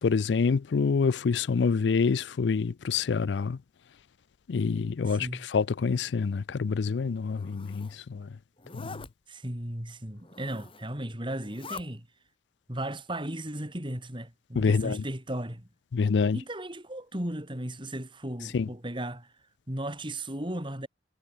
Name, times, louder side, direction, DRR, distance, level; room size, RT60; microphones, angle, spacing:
voice 1, 0.0-3.6 4.5-8.4 8.7-9.0 14.6-15.0 15.9-16.4 18.5-18.7, left 5 dB, 85° left, 0.4 m, -27 dB
voice 2, 5.1-5.4 9.3-12.1 12.7-15.6 16.3-19.3 19.7-20.9, right 1 dB, 30° right, 4.4 m, -36 dB
Zipper (clothing), 7.2-8.0 8.6-9.1 10.2-10.9 11.3-11.8, left 4 dB, 30° left, 4.3 m, -44 dB
head